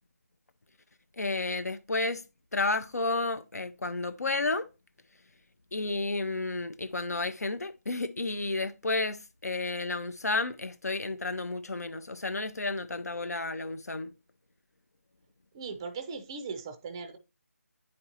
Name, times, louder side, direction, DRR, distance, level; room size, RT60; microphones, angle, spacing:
voice 1, 1.2-2.2 2.5-4.7 5.7-14.1, left 3 dB, 80° left, 0.7 m, -31 dB
voice 2, 15.5-17.2, right 5 dB, 15° right, 0.4 m, -38 dB
9.8 x 4.4 x 2.7 m
figure-of-eight pair, 160°, 9 cm